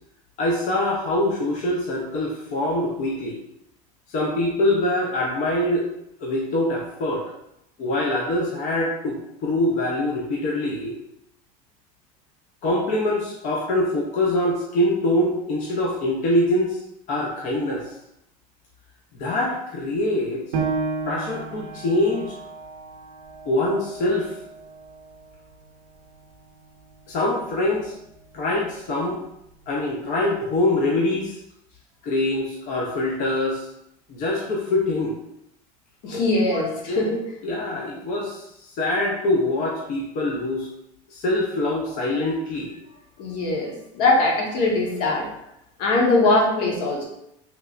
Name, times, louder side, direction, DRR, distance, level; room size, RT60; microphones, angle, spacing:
voice 1, 0.4-3.4 4.1-5.9 6.2-7.2 7.8-11.0 12.6-16.8 17.1-17.9 19.2-20.4 21.1-22.3 23.5-24.3 27.1-27.9 28.3-29.2 29.7-31.4 32.0-33.7 34.1-35.2 36.5-37.1 37.4-40.7 41.1-42.7 46.2-46.3, left 1 dB, 40° left, -2 dB, 0.5 m, -24 dB
Piano, 20.5-25.7 26.2-26.3 26.9-27.4, right 4 dB, 80° right, 0.7 m, -32 dB
voice 2, 36.0-37.2 43.2-45.2 45.8-47.0, left 2 dB, 70° left, -2 dB, 1.1 m, -21 dB
3.2 x 3.0 x 2.4 m, 0.82 s
supercardioid pair, 135°, 19 cm